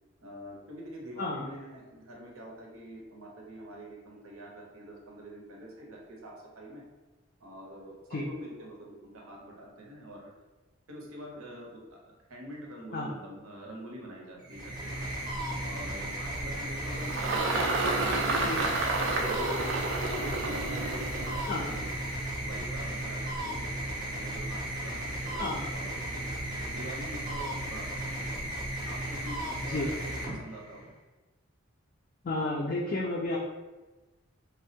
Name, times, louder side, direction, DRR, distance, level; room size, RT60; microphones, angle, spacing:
voice 1, 0.2-6.8 7.4-10.3 10.9-12.0 12.3-15.1 15.6-21.9 22.4-25.5 25.7-26.3 26.6-28.3 28.8-30.8, right 1 dB, 85° right, -1 dB, 0.7 m, -45 dB
sound 1, 14.4-30.9, right 1 dB, 20° right, 0.6 m, -35 dB
Engine, 16.3-22.9, right 2 dB, 60° right, 0.4 m, -31 dB
voice 2, 32.2-33.4, left 2 dB, 40° left, -3 dB, 0.3 m, -31 dB
3.3 x 2.1 x 2.7 m, 1.1 s
head